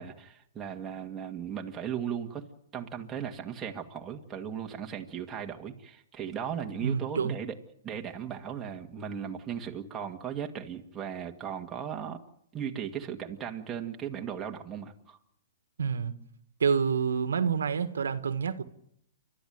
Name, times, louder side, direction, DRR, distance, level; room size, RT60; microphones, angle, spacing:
voice 1, 0.0-2.4 2.7-7.6 7.8-12.2 12.5-15.2, right 8 dB, 15° right, 2.1 m, -37 dB
voice 2, 6.8-7.3 15.8-16.2 16.6-18.6, right 6 dB, 90° right, 1.6 m, -28 dB
29.5 x 13.0 x 9.4 m
hypercardioid pair, 145°, 0 cm